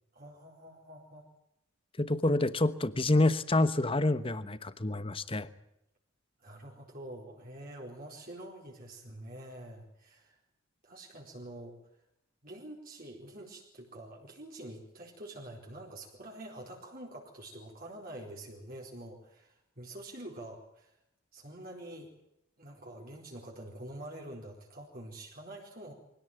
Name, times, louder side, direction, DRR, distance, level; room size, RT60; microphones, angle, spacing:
voice 1, 0.1-1.3 6.4-10.4 10.8-11.8 12.4-20.9 21.3-22.1 22.6-25.9, right 1 dB, 45° right, -1 dB, 4.5 m, -46 dB
voice 2, 2.0-5.5, left 2 dB, 25° left, 13 dB, 1.1 m, -27 dB
24.0 x 17.5 x 9.1 m, 0.81 s
head